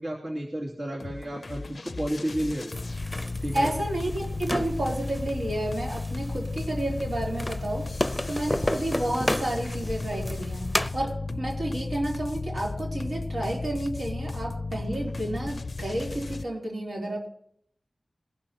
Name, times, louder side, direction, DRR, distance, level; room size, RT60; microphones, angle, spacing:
voice 1, 0.0-2.8 3.4-3.7, right 1 dB, 55° right, -3 dB, 2.8 m, -32 dB
sound 1, 1.0-16.5, left 3 dB, 65° left, 0.4 m, -34 dB
sound 2, 2.7-10.9, left 1 dB, 10° left, 0.7 m, -33 dB
voice 2, 3.5-7.9 8.3-17.3, right 1 dB, 80° right, -2 dB, 3.6 m, -31 dB
21.5 x 12.0 x 2.9 m, 0.68 s
wide cardioid pair, 50°, 0 cm